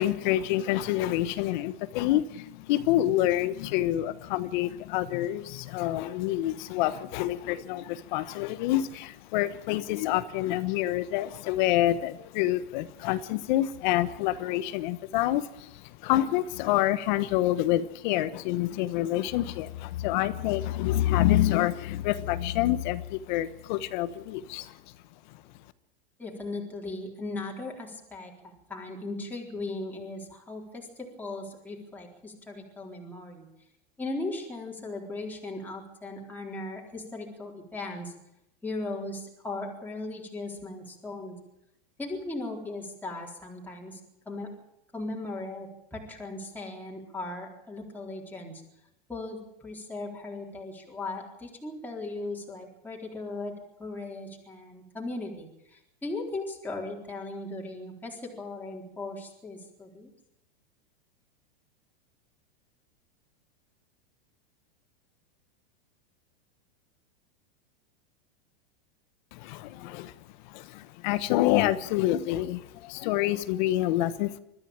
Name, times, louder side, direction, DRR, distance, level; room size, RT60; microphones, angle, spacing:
voice 1, 0.0-24.7 69.3-70.1 70.4-74.4, left 14 dB, 50° left, 14 dB, 1.2 m, -27 dB
voice 2, 26.2-33.5 34.0-38.1 38.6-41.3 42.0-44.0 44.3-44.5 44.9-48.6 49.1-53.5 53.8-60.1, left 2 dB, 5° left, -2 dB, 4.0 m, -38 dB
22.0 x 14.0 x 8.8 m, 0.83 s
supercardioid pair, 145°, 29 cm